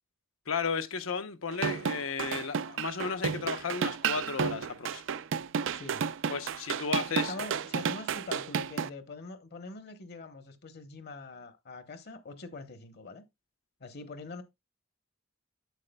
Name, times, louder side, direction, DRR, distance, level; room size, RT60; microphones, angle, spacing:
voice 1, 0.5-5.0 6.3-7.3, left 5 dB, 80° left, 0.8 m, -34 dB
sound 1, 1.5-8.9, right 6 dB, 65° right, 0.4 m, -32 dB
voice 2, 5.7-6.0 7.1-13.2 13.8-14.4, left 3 dB, 55° left, 1.0 m, -43 dB
9.3 x 7.4 x 2.2 m
head